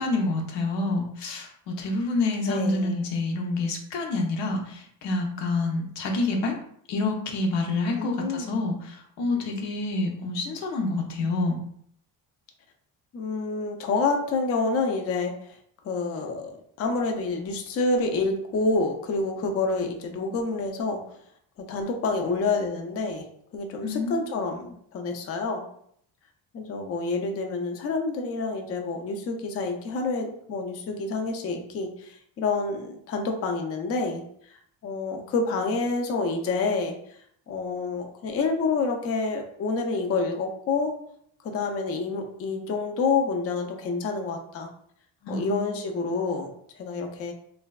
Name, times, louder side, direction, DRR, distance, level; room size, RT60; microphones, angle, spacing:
voice 1, 0.0-1.5 1.8-6.5 6.9-11.6 23.8-24.2 45.2-45.7, left 2 dB, 85° left, 2 dB, 0.7 m, -27 dB
voice 2, 2.5-3.0 8.0-8.5 13.1-15.3 15.8-21.0 21.6-23.2 23.5-25.6 26.5-34.2 34.8-37.0 37.5-40.9 41.4-44.7 45.3-46.5 46.8-47.3, left 3 dB, 35° left, 3 dB, 0.4 m, -28 dB
3.2 x 2.1 x 2.3 m, 0.66 s
cardioid pair, 130°, 41 cm